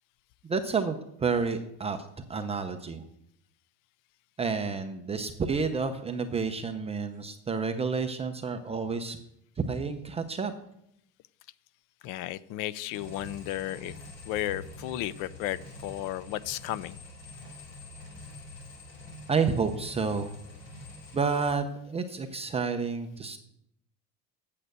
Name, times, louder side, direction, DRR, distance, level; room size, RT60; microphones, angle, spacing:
voice 1, 0.4-2.0 2.3-3.0 4.4-9.2 9.6-10.5 19.3-20.4 21.1-23.4, right 5 dB, 20° right, 7 dB, 0.6 m, -30 dB
voice 2, 12.0-13.9 14.3-17.0, left 14 dB, 75° left, 18 dB, 0.6 m, -34 dB
sound 1, 12.9-21.5, left 2 dB, 35° left, 4.9 m, -46 dB
8.7 x 7.7 x 6.7 m, 0.77 s
cardioid pair, 150°, 32 cm